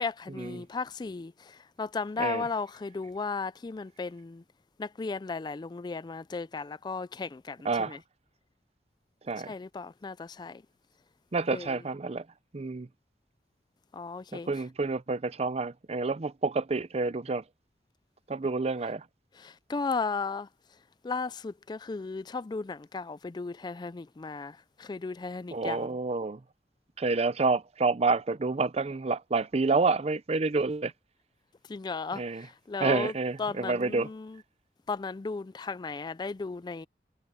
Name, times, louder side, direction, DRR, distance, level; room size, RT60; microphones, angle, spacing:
voice 1, 0.0-4.4 4.8-8.0 9.4-10.6 11.5-11.8 13.9-14.7 19.3-26.0 31.6-34.4 34.9-36.9, left 4 dB, 25° left, 0.3 m, -36 dB
voice 2, 7.7-8.0 9.3-9.5 11.3-12.2 12.5-12.9 14.3-17.4 18.3-19.0 25.5-26.4 27.0-30.9 32.2-32.4 32.8-34.1, right 3 dB, 35° right, 0.6 m, -28 dB
head